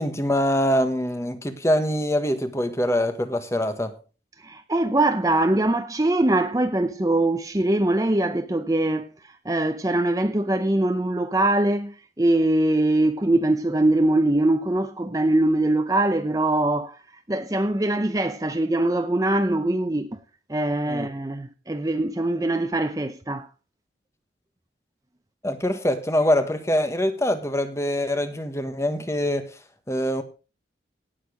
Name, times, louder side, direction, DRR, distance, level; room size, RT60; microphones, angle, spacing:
voice 1, 0.0-3.9 20.9-21.1 25.4-29.6 29.9-30.2, left 1 dB, 15° left, 1.3 m, -24 dB
voice 2, 4.4-17.0 17.3-20.2 20.5-23.5, right 1 dB, 20° right, 0.7 m, -22 dB
17.5 x 6.8 x 5.1 m
head